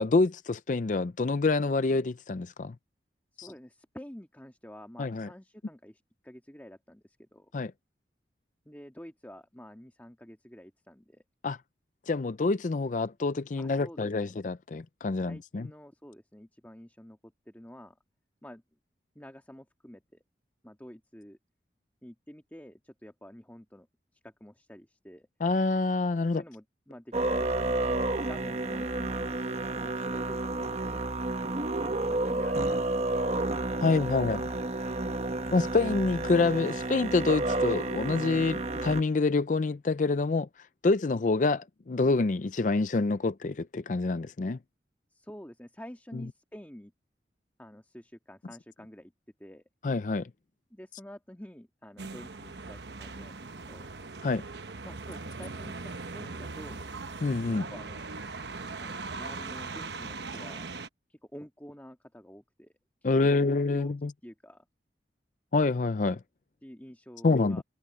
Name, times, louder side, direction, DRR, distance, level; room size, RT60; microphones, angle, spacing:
voice 1, 0.0-2.7 3.4-3.5 5.0-5.3 7.5-7.7 11.4-11.6 12.1-15.7 25.4-26.4 33.8-34.4 35.5-40.5 40.8-44.6 49.8-50.3 54.2-54.4 57.2-57.6 63.0-64.1 65.5-66.2 67.2-67.6, left 3 dB, 45° left, 0.5 m, -27 dB
voice 2, 3.3-7.5 8.7-11.2 13.6-14.3 15.2-18.0 18.4-18.6 19.2-20.2 20.6-21.4 22.0-23.9 24.2-25.3 26.3-31.1 31.8-33.2 33.9-34.9 45.1-46.9 47.6-49.1 49.4-49.6 50.7-53.4 53.7-53.9 54.8-56.8 57.5-58.0 58.8-60.7 61.1-62.7 63.0-63.9 64.2-64.7 66.6-67.6, equal, 10° left, 1.8 m, -49 dB
Musical instrument, 27.1-39.0, right 2 dB, 35° right, 1.1 m, -30 dB
sound 1, 52.0-60.9, right 3 dB, 70° right, 1.1 m, -40 dB
head